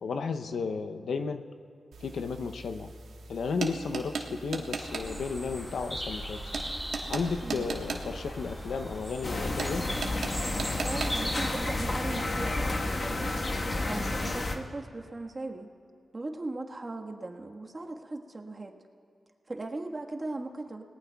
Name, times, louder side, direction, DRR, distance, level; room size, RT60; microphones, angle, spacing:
voice 1, 0.0-1.4 2.0-2.9 3.3-6.4 7.1-9.9, left 5 dB, 80° left, 7 dB, 0.7 m, -33 dB
sound 1, 1.9-13.4, right 4 dB, 90° right, 1.3 m, -40 dB
sound 2, 4.8-12.2, equal, 10° left, 4.0 m, -39 dB
sound 3, 9.2-14.5, left 2 dB, 45° left, 1.3 m, -31 dB
voice 2, 10.8-13.4 13.8-15.7 16.1-18.8 19.5-20.8, right 2 dB, 40° right, 2 dB, 1.4 m, -38 dB
28.0 x 18.5 x 2.3 m, 2.4 s
cardioid pair, 50°, 0 cm